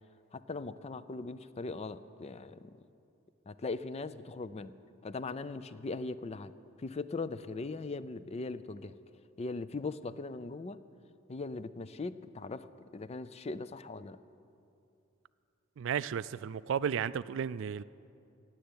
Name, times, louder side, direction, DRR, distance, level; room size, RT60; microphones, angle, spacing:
voice 1, 0.3-2.9 3.5-4.7 5.0-6.5 6.8-9.0 9.4-10.8 11.3-12.7 12.9-14.2, left 3 dB, 30° left, 14 dB, 0.4 m, -39 dB
voice 2, 15.8-17.8, right 8 dB, 60° right, 18 dB, 0.3 m, -33 dB
17.0 x 7.7 x 9.6 m, 2.7 s
head